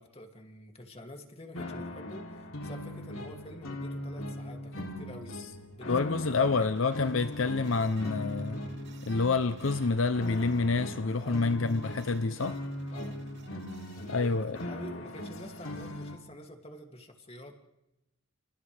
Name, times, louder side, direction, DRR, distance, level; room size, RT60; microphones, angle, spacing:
voice 1, 0.0-5.4 5.7-6.1 6.4-6.7 11.2-11.4 12.9-13.2 13.9-17.5, left 1 dB, 30° left, 3 dB, 2.6 m, -47 dB
sound 1, 1.5-16.2, left 1 dB, 85° left, 3.3 m, -40 dB
sound 2, 5.2-14.7, right 3 dB, 55° right, 3.1 m, -57 dB
voice 2, 5.9-8.6 9.0-12.6 14.1-14.6, left 3 dB, 70° left, 11 dB, 0.7 m, -28 dB
29.5 x 28.5 x 3.5 m, 0.91 s
head